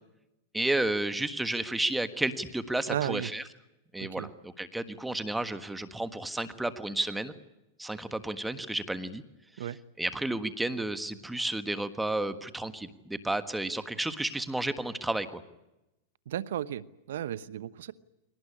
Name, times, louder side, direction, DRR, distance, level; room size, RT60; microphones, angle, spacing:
voice 1, 0.5-3.4 3.9-7.3 7.8-9.2 9.6-9.7 10.0-15.4, right 2 dB, 5° right, 11 dB, 1.5 m, -32 dB
voice 2, 2.9-3.3 4.0-4.3 9.6-9.8 16.3-17.9, right 11 dB, 80° right, 17 dB, 1.0 m, -34 dB
23.5 x 18.5 x 10.0 m, 0.94 s
hypercardioid pair, 130°, 0 cm